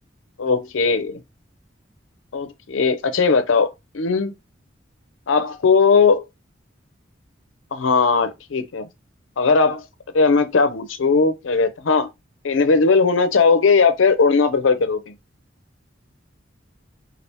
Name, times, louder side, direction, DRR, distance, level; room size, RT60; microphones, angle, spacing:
voice 1, 0.4-1.2 2.3-4.3 5.3-6.2 7.7-8.9 9.4-9.8 10.1-12.1 12.4-15.1, left 4 dB, 85° left, 0.6 m, -18 dB
3.3 x 2.4 x 2.8 m
head